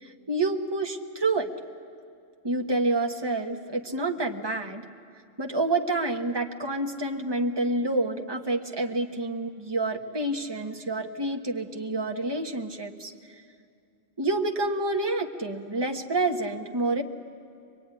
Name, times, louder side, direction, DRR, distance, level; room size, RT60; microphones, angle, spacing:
voice 1, 0.0-1.5 2.4-4.8 5.4-13.1 14.2-17.0, right 2 dB, 20° right, 2 dB, 1.3 m, -28 dB
24.0 x 22.0 x 9.7 m, 2.3 s
omnidirectional pair, 1.3 m